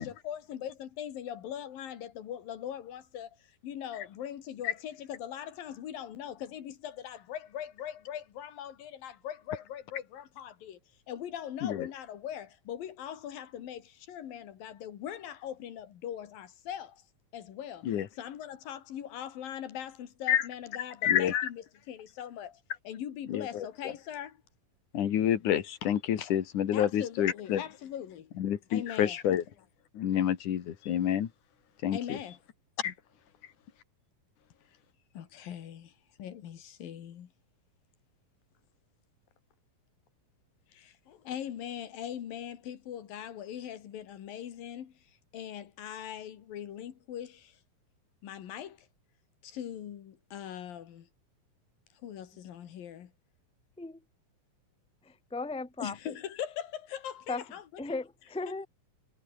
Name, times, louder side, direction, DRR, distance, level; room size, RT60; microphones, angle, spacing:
voice 1, 0.0-10.8 11.1-17.0 17.3-17.9 18.2-24.4 26.7-28.3 28.7-29.2 31.9-32.4 35.1-35.9 36.2-37.3 40.7-44.9 45.3-47.6 48.2-48.9 49.4-51.1 52.0-53.1 55.8-57.6, left 10 dB, 90° left, 3.8 m, -41 dB
voice 2, 21.0-21.5 23.3-23.7 24.9-27.6 28.4-29.4 29.9-31.3 31.8-32.2 32.8-32.9, left 10 dB, 65° left, 3.2 m, -28 dB
voice 3, 55.0-56.1 57.3-57.4 57.8-58.7, left 3 dB, 5° left, 0.8 m, -36 dB
omnidirectional pair, 3.9 m